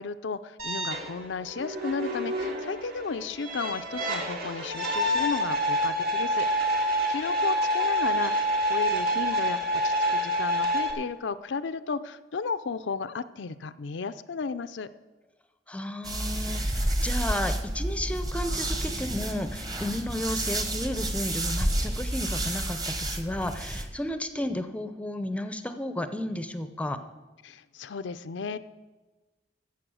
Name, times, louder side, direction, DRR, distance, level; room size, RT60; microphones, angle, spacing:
voice 1, 0.0-14.9 27.4-28.6, left 5 dB, 80° left, 12 dB, 0.5 m, -34 dB
sound 1, 0.6-10.9, equal, 55° right, 1.9 m, -27 dB
voice 2, 15.7-27.0, left 1 dB, 5° left, 9 dB, 0.6 m, -33 dB
sound 2, 16.0-23.8, right 1 dB, 20° right, 1.2 m, -30 dB
15.0 x 7.3 x 6.3 m, 1.2 s
head